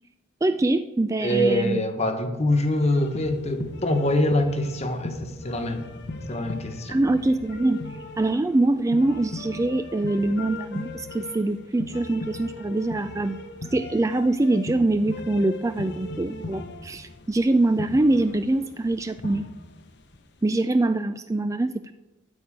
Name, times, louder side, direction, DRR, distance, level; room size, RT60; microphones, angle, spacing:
voice 1, 0.4-1.8 6.9-7.8 8.2-13.4 13.7-19.5 20.4-21.9, right 2 dB, 15° right, 10 dB, 0.3 m, -24 dB
voice 2, 1.2-5.8 6.3-7.0, left 1 dB, 35° left, 6 dB, 1.2 m, -24 dB
sound 1, 2.5-20.2, left 2 dB, 60° left, 0.9 m, -39 dB
13.5 x 4.6 x 8.8 m, 1.1 s
head